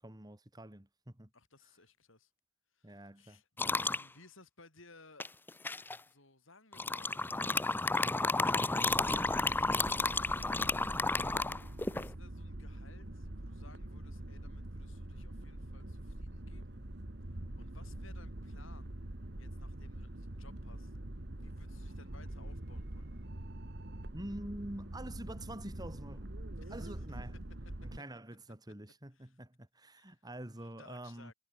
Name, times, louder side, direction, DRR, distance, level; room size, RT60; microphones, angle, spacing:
voice 1, 0.0-1.3 2.8-3.4 24.1-26.3 26.7-27.4 27.8-31.3, right 1 dB, 20° right, 1.9 m, -46 dB
voice 2, 1.3-2.3 2.7-5.3 6.1-11.1 11.7-16.8 17.3-18.9 19.4-21.0 21.4-23.1 26.6-27.2 29.1-29.4 29.9-30.3 30.6-31.3, left 3 dB, 65° left, 6.9 m, -61 dB
sound 1, 3.6-4.0 5.2-6.0 6.7-12.1, left 3 dB, 10° left, 0.4 m, -32 dB
sound 2, 8.9-28.0, right 1 dB, 55° right, 1.9 m, -44 dB
head